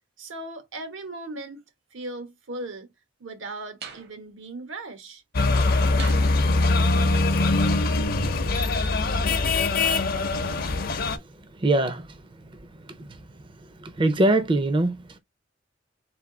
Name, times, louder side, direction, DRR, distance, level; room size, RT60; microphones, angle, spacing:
voice 1, 0.2-1.6 1.9-2.9 3.2-5.2, right 2 dB, 85° right, 1.1 m, -37 dB
sound 1, 3.8-4.1 6.0-6.4 8.0-9.0 10.3-11.1, right 3 dB, 60° right, 0.9 m, -41 dB
sound 2, 5.3-11.2, left 3 dB, 50° left, 0.6 m, -22 dB
voice 2, 11.6-12.1 13.8-15.2, right 2 dB, 25° right, 0.5 m, -22 dB
3.5 x 2.6 x 3.7 m
head